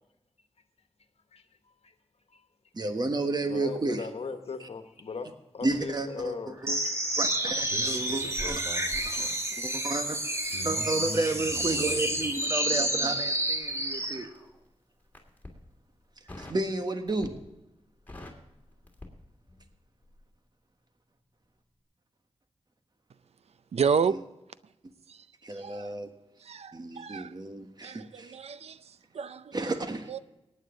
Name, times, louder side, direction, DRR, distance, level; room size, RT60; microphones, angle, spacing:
voice 1, 2.7-4.1 5.6-6.3 6.6-6.8 7.2-8.6 9.1-9.2 9.6-10.2 10.6-14.3 16.4-17.4 25.4-26.1 26.7-28.4 29.5-30.1, right 2 dB, 40° right, 1.4 m, -32 dB
voice 2, 3.5-6.9, left 4 dB, 75° left, 1.3 m, -38 dB
sound 1, 6.6-14.2, right 1 dB, 25° right, 1.7 m, -29 dB
Crackle, 13.3-14.5 15.0-15.6 16.3-16.7 17.1-17.5 17.8-19.8 20.0-20.2, left 2 dB, 15° left, 2.9 m, -47 dB
voice 3, 23.7-24.2 25.1-25.2 25.6-25.9 26.4-27.3 27.8-28.8 29.1-29.7 30.1-30.2, right 6 dB, 85° right, 0.5 m, -30 dB
18.5 x 9.2 x 3.8 m
wide cardioid pair, 75°, 11 cm